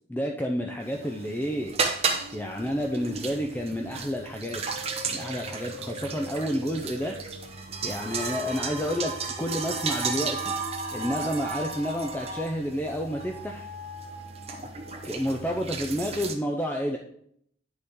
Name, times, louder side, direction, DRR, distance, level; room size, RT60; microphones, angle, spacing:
voice 1, 0.1-1.7 2.3-4.6 5.0-7.2 7.8-9.1 9.4-10.5 10.9-13.7 15.1-17.0, equal, 10° left, 1 dB, 0.5 m, -30 dB
sound 1, 0.8-16.3, right 4 dB, 30° right, 1.0 m, -34 dB
sound 2, 2.1-12.3 12.8-15.6, equal, 60° right, 1.4 m, -45 dB
9.5 x 6.7 x 3.7 m, 0.67 s
head